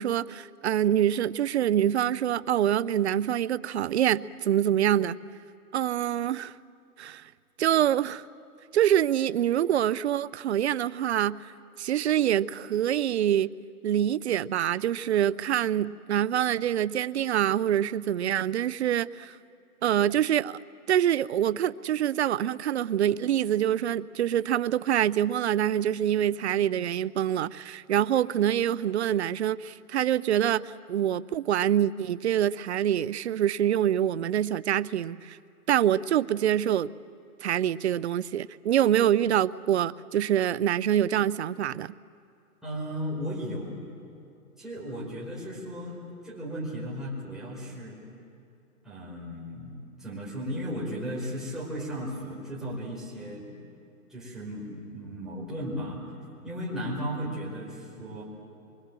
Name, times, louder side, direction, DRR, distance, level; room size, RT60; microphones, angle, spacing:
voice 1, 0.0-5.2 5.7-6.5 7.0-7.2 7.6-8.2 8.7-11.5 11.8-13.5 13.8-19.4 19.8-20.6 20.9-35.4 35.7-36.9 37.4-41.9, right 11 dB, 50° right, 18 dB, 0.6 m, -25 dB
voice 2, 42.6-43.8 44.6-48.0 48.8-53.6 54.1-56.0 56.4-58.2, equal, ahead, -6 dB, 5.3 m, -35 dB
27.0 x 24.0 x 7.6 m, 2.5 s
hypercardioid pair, 145°, 44 cm